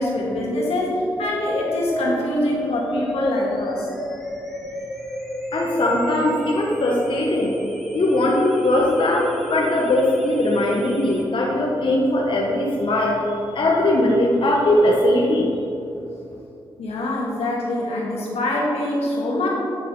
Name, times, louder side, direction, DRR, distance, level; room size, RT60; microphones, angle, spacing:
voice 1, 0.0-3.9 16.8-19.5, left 1 dB, 80° left, -3 dB, 1.7 m, -24 dB
sound 1, 1.2-11.2, equal, ahead, 1.6 m, -32 dB
voice 2, 5.5-7.5 7.9-13.2 13.5-15.5, left 1 dB, 55° left, -2 dB, 1.1 m, -20 dB
9.0 x 6.2 x 3.7 m, 2.8 s
supercardioid pair, 45°, 10 cm